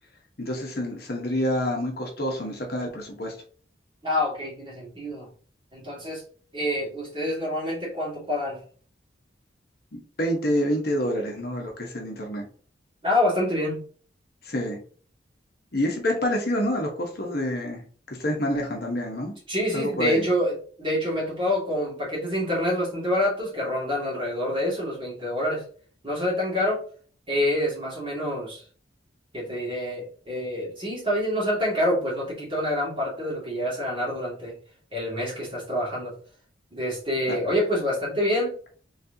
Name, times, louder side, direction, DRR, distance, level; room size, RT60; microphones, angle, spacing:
voice 1, 0.4-3.3 9.9-12.4 14.4-14.8 15.7-19.3 19.7-20.2 37.3-37.4, equal, 55° left, 0 dB, 0.9 m, -27 dB
voice 2, 4.0-5.3 5.7-6.2 6.5-8.6 13.0-13.8 19.5-25.6 26.0-26.8 27.3-28.6 29.3-34.5 34.9-36.1 36.7-38.5, left 1 dB, 25° right, -5 dB, 2.0 m, -27 dB
4.2 x 3.2 x 2.7 m, 0.43 s
head